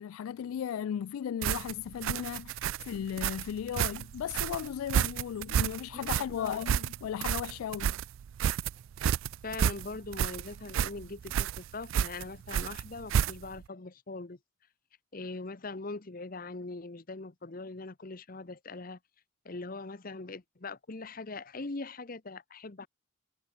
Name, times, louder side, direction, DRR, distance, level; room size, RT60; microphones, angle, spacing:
voice 1, 0.0-8.0, left 9 dB, 90° left, 0.3 m, -36 dB
sound 1, 1.4-13.6, right 9 dB, 70° right, 0.3 m, -31 dB
voice 2, 5.9-6.6 9.4-14.4 15.1-19.0 19.4-22.9, left 3 dB, 45° left, 0.9 m, -41 dB
head